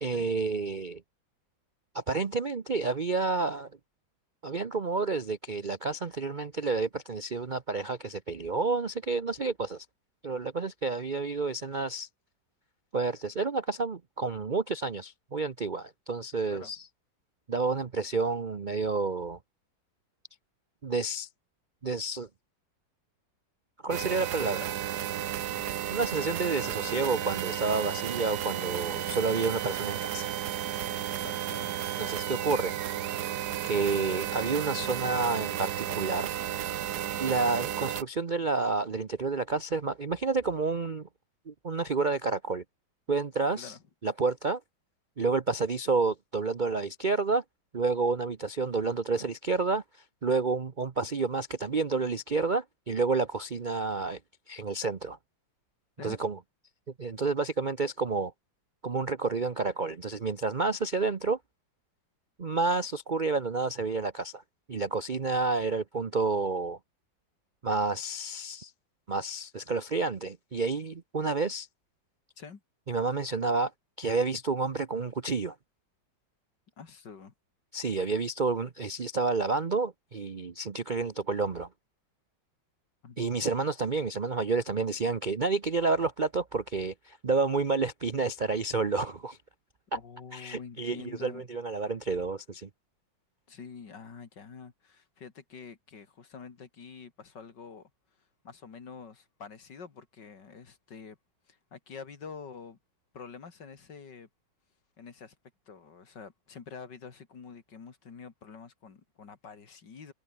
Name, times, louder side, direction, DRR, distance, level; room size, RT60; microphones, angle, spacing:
voice 1, 0.0-1.0 1.9-3.7 4.4-9.9 10.2-12.1 12.9-16.8 17.5-19.4 20.8-21.3 21.8-22.3 23.8-24.8 25.9-30.3 32.0-32.7 33.6-36.3 37.2-41.1 41.5-42.6 43.1-43.7 44.0-44.6 45.2-47.4 47.7-49.8 50.2-54.2 54.5-55.2 56.0-56.4 57.0-58.3 58.8-61.4 62.4-64.4 64.7-66.8 67.6-68.7 69.1-71.7 72.9-73.7 74.0-75.6 77.7-81.7 83.2-89.4 90.3-92.7, right 4 dB, 40° right, 0.7 m, -30 dB
sound 1, 23.9-38.0, right 11 dB, 60° right, 1.3 m, -33 dB
voice 2, 31.2-31.9 43.5-43.8 56.0-56.2 72.4-72.6 76.8-77.3 83.0-83.2 89.9-91.4 93.5-101.2 101.5-102.8 103.1-104.3 105.0-105.4 105.7-110.1, left 5 dB, 65° left, 2.9 m, -47 dB
omnidirectional pair, 2.1 m